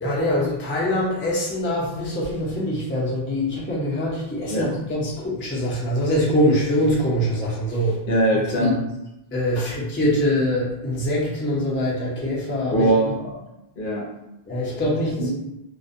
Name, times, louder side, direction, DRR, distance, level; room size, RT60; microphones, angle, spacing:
voice 1, 0.0-8.0 8.6-8.8 9.3-12.9 14.5-15.3, left 1 dB, 15° left, -5 dB, 0.4 m, -23 dB
voice 2, 8.1-8.7 9.6-9.7 12.7-13.3 13.8-14.1 15.2-15.3, right 1 dB, 65° left, -2 dB, 0.7 m, -21 dB
2.5 x 2.1 x 2.5 m, 0.90 s
omnidirectional pair, 1.0 m